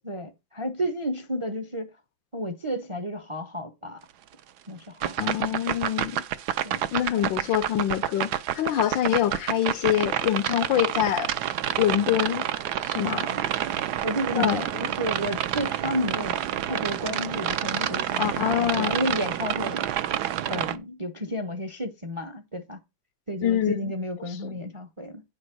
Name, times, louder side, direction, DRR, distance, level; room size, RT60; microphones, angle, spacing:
voice 1, 0.0-1.9 2.3-4.0 4.7-5.4 6.6-7.4 13.0-13.4 14.0-16.4 16.7-19.9 20.5-22.8 23.3-25.2, equal, 25° right, 0.6 m, -32 dB
sound 1, 5.0-20.8, right 11 dB, 65° right, 1.1 m, -28 dB
voice 2, 5.2-6.2 6.9-11.3 11.8-12.5 12.8-13.2 14.3-14.9 18.2-19.0 23.4-23.9 24.3-24.6, left 11 dB, 75° left, 1.4 m, -25 dB
9.7 x 5.3 x 6.1 m
omnidirectional pair, 2.2 m